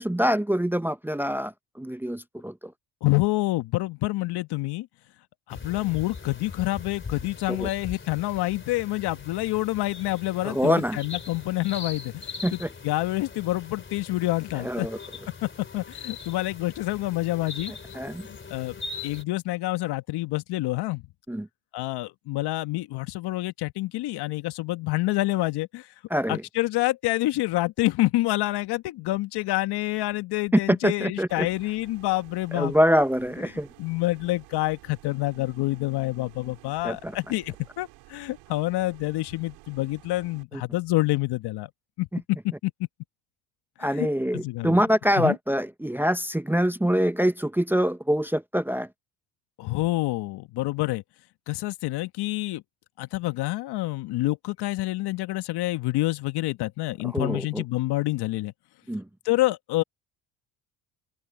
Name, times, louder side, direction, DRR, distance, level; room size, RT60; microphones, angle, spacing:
voice 1, 0.0-2.7 7.5-7.7 10.4-11.0 12.4-12.7 14.5-15.0 17.9-18.3 21.3-21.5 26.1-26.4 30.7-31.5 32.5-33.7 36.8-37.2 40.5-40.6 42.1-42.2 43.8-48.9 57.1-57.6 58.9-59.1, equal, 5° right, 0.9 m, -25 dB
voice 2, 3.0-4.9 5.5-12.2 12.5-14.9 15.4-17.7 18.3-18.8 19.0-21.1 21.7-25.9 26.3-32.7 33.8-41.7 42.0-42.1 42.4-42.7 44.0-44.8 45.2-45.4 49.6-51.0 51.5-52.6 53.0-58.5 59.3-59.8, left 18 dB, 65° left, 1.9 m, -27 dB
sound 1, 5.5-19.2, left 4 dB, 25° left, 3.4 m, -41 dB
sound 2, 31.3-40.4, right 22 dB, 75° right, 5.1 m, -52 dB
open air
hypercardioid pair, 65°, 43 cm